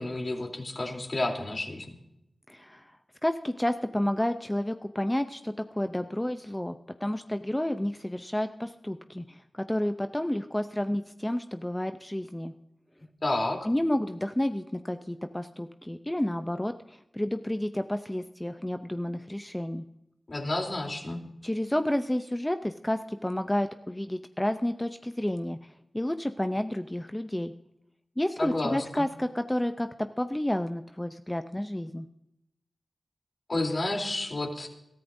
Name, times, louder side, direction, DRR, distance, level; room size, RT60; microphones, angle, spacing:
voice 1, 0.0-1.9 13.2-13.7 20.3-21.2 28.4-29.0 33.5-34.7, left 2 dB, 45° left, 0 dB, 3.3 m, -30 dB
voice 2, 2.5-2.9 3.2-6.8 7.0-12.5 13.6-19.8 21.4-25.6 25.9-27.5 28.2-32.1, left 1 dB, 15° left, 8 dB, 0.6 m, -30 dB
21.5 x 13.5 x 2.7 m, 0.83 s
cardioid pair, 55°, 0 cm